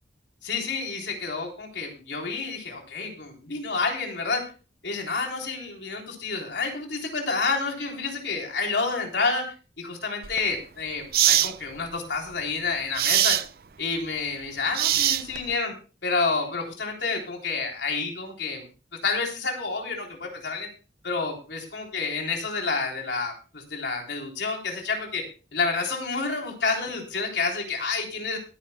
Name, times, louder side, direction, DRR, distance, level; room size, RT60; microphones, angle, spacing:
voice 1, 0.4-4.5 4.8-13.4 13.8-15.7 16.0-18.7 19.0-20.7 21.0-25.2 25.5-28.4, left 4 dB, 75° left, 1 dB, 3.6 m, -29 dB
sound 1, 10.2-10.4 11.1-11.5 12.9-13.5 14.7-15.5, right 13 dB, 55° right, 0.5 m, -21 dB
23.0 x 10.0 x 2.2 m, 0.33 s
head